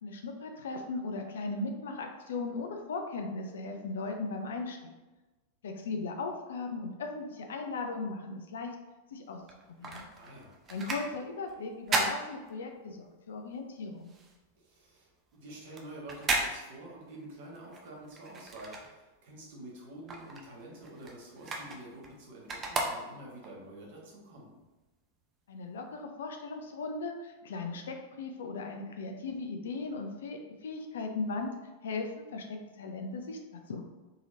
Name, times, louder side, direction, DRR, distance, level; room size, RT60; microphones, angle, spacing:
voice 1, 0.0-4.9 5.6-8.8 9.1-9.4 9.8-10.0 10.7-14.1 25.5-31.5 31.8-33.8, left 3 dB, 60° left, 4 dB, 0.4 m, -37 dB
sound 1, 9.4-13.1 13.4-19.4 19.7-23.5 24.0-24.1, right 2 dB, 25° right, 0.6 m, -36 dB
voice 2, 10.1-10.5 14.6-24.6, right 1 dB, 55° right, -3 dB, 1.1 m, -48 dB
3.9 x 3.0 x 2.5 m, 1.1 s
figure-of-eight pair, 90°, 0 cm